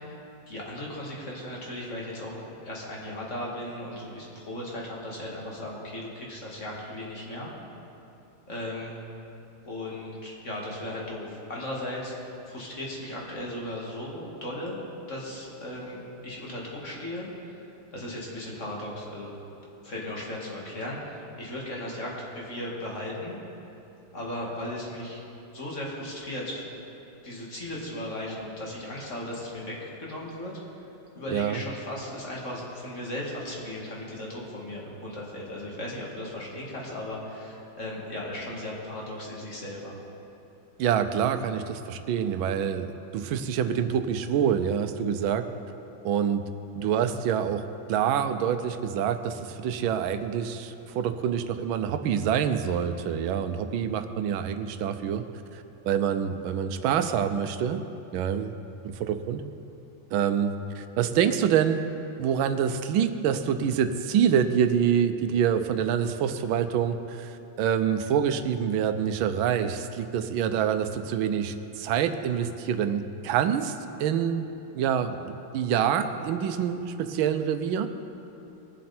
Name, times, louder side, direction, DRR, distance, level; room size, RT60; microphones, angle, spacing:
voice 1, 0.0-7.5 8.5-9.0 9.6-17.6 17.9-19.3 19.8-23.4 24.1-25.2 25.5-26.7 27.2-30.5 31.1-39.9, left 1 dB, 35° left, -4 dB, 2.4 m, -36 dB
voice 2, 31.3-31.6 40.8-45.5 46.0-46.4 46.8-47.6 47.9-55.2 55.5-57.8 58.1-58.5 58.8-59.4 60.1-61.8 62.2-73.7 74.0-74.5 74.7-77.9, right 8 dB, 80° right, 9 dB, 1.4 m, -26 dB
21.5 x 7.6 x 4.3 m, 2.9 s
omnidirectional pair, 2.2 m